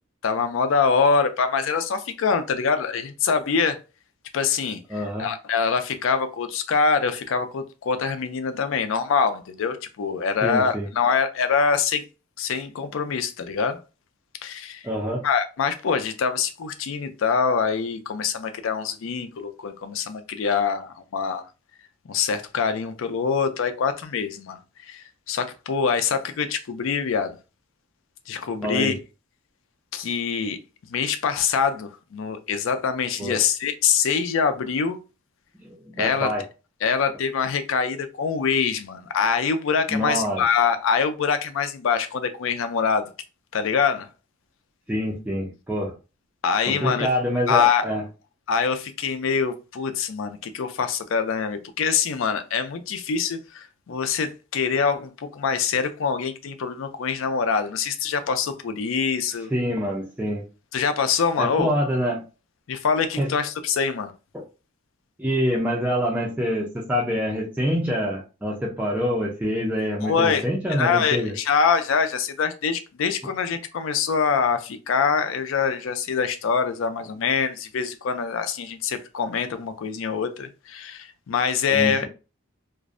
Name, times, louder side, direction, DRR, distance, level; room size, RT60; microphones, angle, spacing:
voice 1, 0.2-3.8 4.3-4.8 5.2-12.0 12.4-13.8 14.4-14.8 15.2-21.4 22.1-24.6 24.9-27.4 28.3-28.9 29.9-30.6 30.9-35.0 36.0-36.4 36.8-43.1 43.5-44.1 46.4-47.1 47.5-47.9 48.5-59.5 60.7-61.7 62.7-64.1 70.0-70.4 70.7-82.1, left 6 dB, 65° left, 0.4 m, -24 dB
voice 2, 4.9-5.3 10.4-10.9 14.8-15.3 20.4-20.5 28.6-28.9 33.2-33.4 35.6-36.4 39.9-40.4 44.9-45.9 46.7-48.0 59.5-60.4 61.4-62.2 63.2-63.3 64.3-64.4 65.2-71.4 81.7-82.1, equal, 5° right, 0.4 m, -26 dB
2.5 x 2.0 x 2.4 m
head